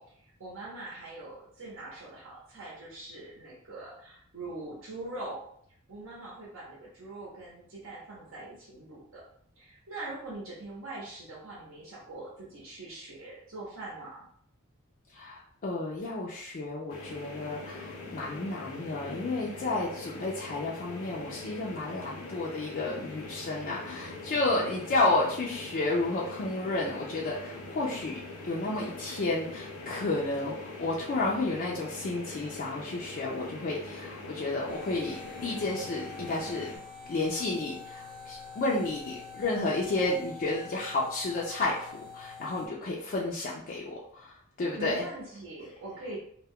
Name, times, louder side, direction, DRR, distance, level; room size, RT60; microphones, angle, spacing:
voice 1, 0.0-5.4 5.9-9.2 9.6-14.3 44.8-46.2, right 2 dB, 65° right, -5 dB, 0.7 m, -42 dB
voice 2, 15.1-36.7 37.1-45.0, left 2 dB, 40° left, -4 dB, 0.4 m, -31 dB
sound 1, 16.9-36.8, left 2 dB, 85° left, 0.6 m, -43 dB
sound 2, 34.7-42.7, left 5 dB, 25° right, 0.8 m, -46 dB
2.2 x 2.1 x 3.5 m, 0.64 s
head